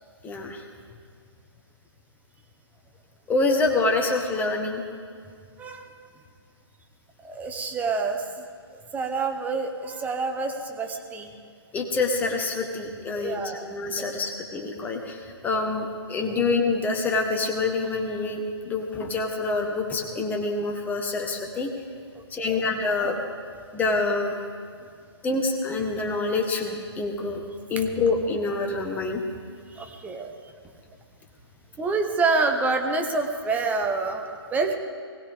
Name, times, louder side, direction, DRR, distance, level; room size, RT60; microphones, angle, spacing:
voice 1, 0.2-0.6 3.3-4.8 11.7-21.7 22.3-23.2 23.7-24.4 25.2-27.4 27.7-29.2, left 3 dB, 10° left, 2 dB, 1.3 m, -26 dB
voice 2, 5.6-5.9 7.2-8.5 8.7-11.3 13.1-13.7 13.9-14.3 16.2-16.4 22.4-22.6 27.8-27.9 29.7-30.3 31.8-34.8, right 3 dB, 10° right, 4 dB, 0.9 m, -28 dB
20.0 x 16.5 x 3.7 m, 2.1 s
figure-of-eight pair, 135°, 14 cm